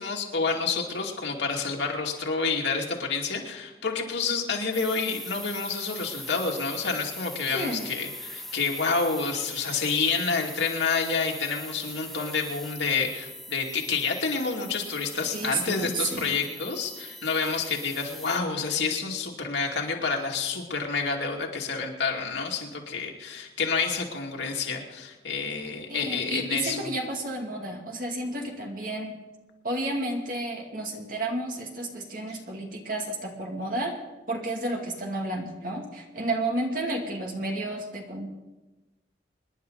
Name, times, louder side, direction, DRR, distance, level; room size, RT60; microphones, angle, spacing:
voice 1, 0.0-26.9 32.3-32.4, left 4 dB, 80° left, 0 dB, 2.5 m, -29 dB
sound 1, 4.7-18.4, left 1 dB, ahead, 0.5 m, -41 dB
voice 2, 7.5-7.9 15.3-16.3 25.9-29.1 29.6-33.9 34.3-38.3, right 2 dB, 50° right, 1 dB, 2.4 m, -31 dB
26.0 x 10.5 x 4.0 m, 1.1 s
head